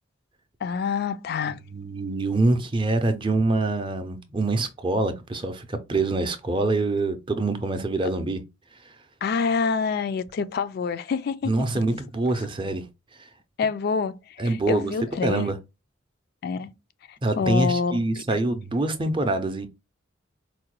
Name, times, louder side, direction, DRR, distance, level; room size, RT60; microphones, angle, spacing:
voice 1, 0.6-1.6 9.2-11.8 13.6-15.5 16.4-16.7 17.1-18.2, left 5 dB, 50° left, 0.3 m, -27 dB
voice 2, 1.5-8.4 11.4-12.9 14.4-14.9 15.2-15.6 17.2-19.7, right 2 dB, 25° right, 0.5 m, -25 dB
4.6 x 2.2 x 3.0 m
head